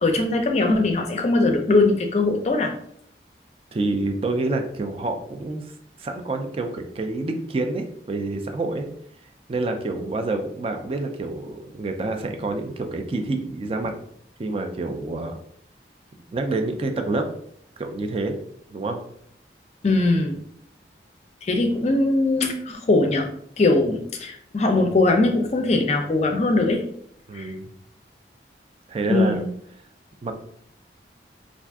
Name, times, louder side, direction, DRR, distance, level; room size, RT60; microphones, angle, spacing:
voice 1, 0.0-2.7 19.8-20.4 21.4-23.3 23.6-26.8 27.3-27.5 29.1-29.4, left 2 dB, 40° left, 4 dB, 0.4 m, -21 dB
voice 2, 3.7-5.6 6.0-8.9 9.5-14.0 14.4-15.4 16.3-17.3 17.8-18.4 18.7-19.0 27.3-27.7 28.9-29.4 30.2-30.3, right 2 dB, 30° right, 5 dB, 0.3 m, -27 dB
2.5 x 2.4 x 3.4 m, 0.67 s
head